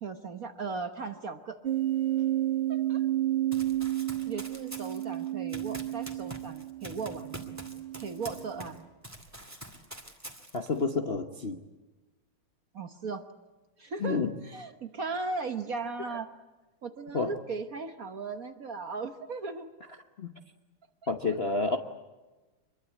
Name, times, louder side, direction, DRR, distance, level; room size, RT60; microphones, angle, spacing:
voice 1, 0.0-1.6 2.7-3.0 4.3-7.4 8.0-8.8 12.7-13.2 13.8-16.3 16.8-19.7 21.0-21.1, right 4 dB, 50° right, 7 dB, 1.3 m, -37 dB
sound 1, 1.6-8.7, right 14 dB, 30° right, 1.9 m, -31 dB
Run, 3.5-8.8 9.0-10.8, right 1 dB, 5° right, 2.2 m, -45 dB
voice 2, 10.5-11.6 14.0-14.3 17.1-17.3 20.2-20.3 21.1-21.8, left 3 dB, 40° left, 3 dB, 0.9 m, -29 dB
25.5 x 22.0 x 8.4 m, 1.2 s
omnidirectional pair, 2.4 m